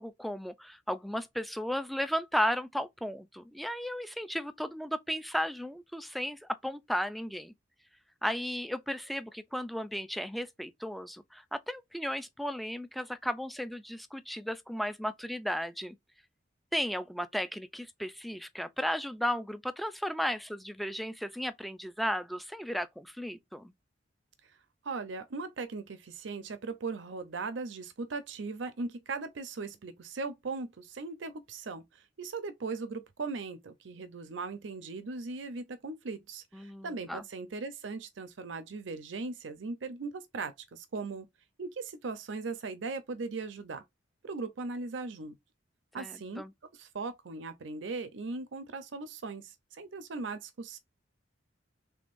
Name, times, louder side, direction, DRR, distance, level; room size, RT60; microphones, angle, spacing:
voice 1, 0.0-7.5 8.2-16.0 16.7-23.7 36.5-37.2 46.0-46.5, equal, ahead, 0.4 m, -35 dB
voice 2, 24.8-41.3 41.6-43.8 44.2-45.4 45.9-46.4 46.7-50.8, right 3 dB, 80° right, 0.6 m, -39 dB
3.6 x 3.4 x 2.5 m
head